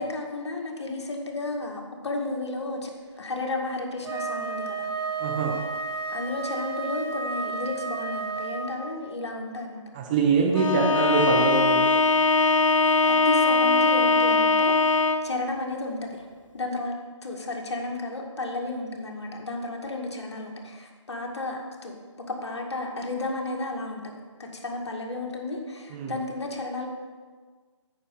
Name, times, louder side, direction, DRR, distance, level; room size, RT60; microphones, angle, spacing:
voice 1, 0.0-2.9 3.2-4.9 6.1-9.8 13.0-16.3 16.5-16.9 17.2-22.0 22.3-26.9, left 2 dB, 60° left, 1 dB, 1.9 m, -33 dB
Wind instrument woodwind instrument, 4.0-8.9, right 4 dB, 50° right, 2.5 m, -32 dB
voice 2, 5.2-5.5 9.9-11.9 25.9-26.1, right 5 dB, 15° right, 1 dB, 0.6 m, -24 dB
Bowed string instrument, 10.5-15.4, left 3 dB, 80° left, 0.7 m, -21 dB
9.3 x 5.0 x 7.1 m, 1.5 s
figure-of-eight pair, 160°, 16 cm